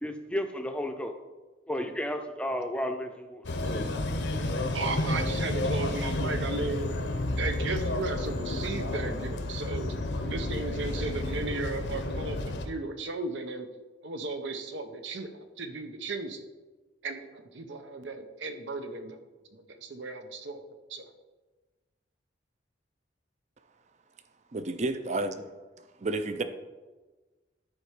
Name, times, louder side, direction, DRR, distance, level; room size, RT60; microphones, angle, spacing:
voice 1, 0.0-1.2 1.7-3.9, equal, 5° left, 6 dB, 0.5 m, -33 dB
sound 1, 3.4-12.7, left 2 dB, 75° left, 0.8 m, -31 dB
voice 2, 4.7-6.9 7.3-9.9 10.2-13.7 14.0-16.5 17.0-19.2 19.5-20.6 20.9-21.1, right 3 dB, 75° right, 8 dB, 0.8 m, -35 dB
voice 3, 24.5-25.4 26.0-26.4, right 2 dB, 40° right, 9 dB, 0.5 m, -30 dB
9.7 x 4.3 x 4.9 m, 1.2 s
head